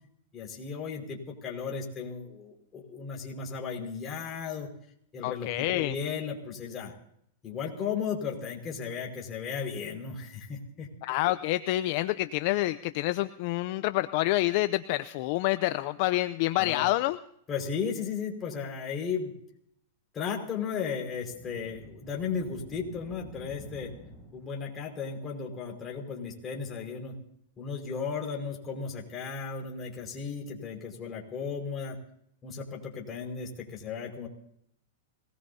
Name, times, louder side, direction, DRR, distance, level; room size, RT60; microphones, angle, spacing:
voice 1, 0.3-4.7 5.1-6.9 7.4-10.9 16.6-16.9 17.5-19.3 20.1-23.9 24.3-27.2 27.6-32.0 32.4-34.3, left 6 dB, 25° left, 0 dB, 5.3 m, -35 dB
voice 2, 5.2-5.9 11.0-17.2, left 17 dB, 50° left, 13 dB, 0.6 m, -27 dB
sound 1, 21.0-24.8, equal, ahead, 6.6 m, -49 dB
26.0 x 20.0 x 2.8 m, 0.71 s
hypercardioid pair, 135°, 0 cm